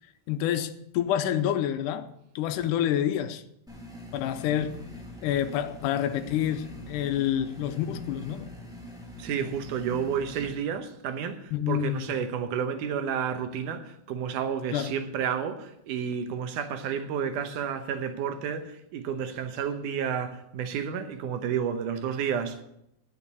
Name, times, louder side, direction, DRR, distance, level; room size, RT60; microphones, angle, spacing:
voice 1, 0.3-3.4 4.1-4.8 5.2-8.5 11.5-12.2 14.7-14.9, left 10 dB, 90° left, 2.2 m, -28 dB
Bitcrushed Ambient Background Loop, 3.7-10.5, left 2 dB, ahead, 1.3 m, -43 dB
voice 2, 9.2-22.6, right 7 dB, 85° right, 2.5 m, -31 dB
10.0 x 6.6 x 8.2 m
omnidirectional pair, 3.5 m